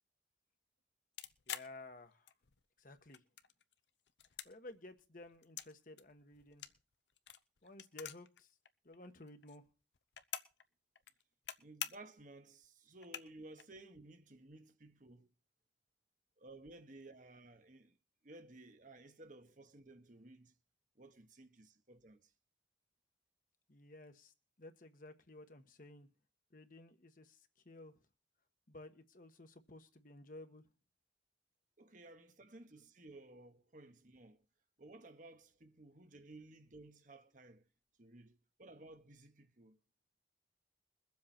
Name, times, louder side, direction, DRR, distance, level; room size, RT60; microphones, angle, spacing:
sound 1, 1.2-2.6 2.9-3.7 4.1-5.7 6.0-8.4 8.6-8.7 8.9-10.6 10.9-11.5 11.8-12.2 12.6-12.7 13.0-13.6, left 10 dB, 75° left, 0.8 m, -46 dB
voice 1, 1.5-2.3 2.8-3.2 4.4-6.7 7.6-8.6 8.8-9.6 23.7-26.1 26.5-28.0 28.7-30.7, left 2 dB, 50° left, 1.3 m, -55 dB
voice 2, 11.6-15.3 16.4-18.0 18.2-20.5 20.9-22.3 31.8-34.4 34.8-37.7 38.0-39.8, right 2 dB, 45° right, 1.2 m, -56 dB
22.0 x 7.6 x 4.4 m
head